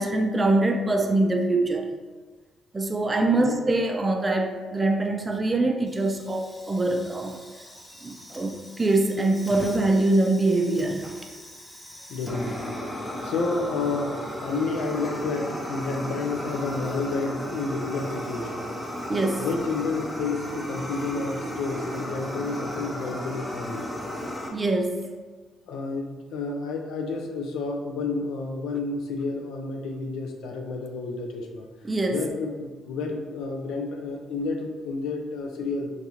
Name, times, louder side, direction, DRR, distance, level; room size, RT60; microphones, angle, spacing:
voice 1, 0.0-1.9 2.7-7.4 8.0-11.1 19.1-19.5 24.5-25.1 31.8-32.2, right 2 dB, 25° right, 4 dB, 0.4 m, -24 dB
Fire, 5.9-24.5, equal, 10° left, 0.7 m, -35 dB
voice 2, 12.1-12.8 13.2-18.7 19.4-23.9 25.6-31.7 32.1-35.9, left 3 dB, 85° left, 2 dB, 0.4 m, -30 dB
3.9 x 2.3 x 2.9 m, 1.4 s
cardioid pair, 90°, 0 cm